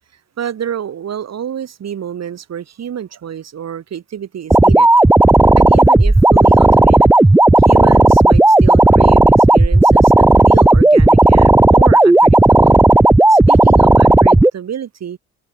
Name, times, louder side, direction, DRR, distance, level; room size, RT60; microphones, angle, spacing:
voice 1, 0.4-4.9 5.5-7.1 7.6-12.7 13.3-15.2, right 9 dB, 60° right, 7.2 m, -28 dB
sound 1, 4.5-14.5, right 2 dB, 5° right, 0.5 m, -10 dB
cardioid pair, 90°, 30 cm